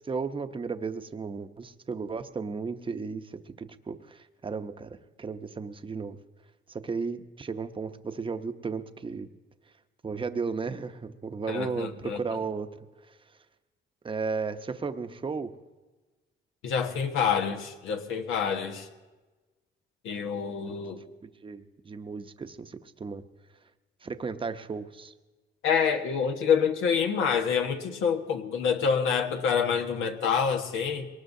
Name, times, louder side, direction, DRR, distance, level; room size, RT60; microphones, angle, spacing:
voice 1, 0.1-6.2 6.7-9.3 10.0-12.7 14.0-15.5 21.4-23.2 24.0-25.1, right 5 dB, 25° right, 9 dB, 0.8 m, -34 dB
voice 2, 11.5-12.2 16.6-18.9 20.0-21.0 25.6-31.1, left 6 dB, 90° left, 4 dB, 1.3 m, -27 dB
22.5 x 19.5 x 2.7 m, 1.2 s
cardioid pair, 90°, 20 cm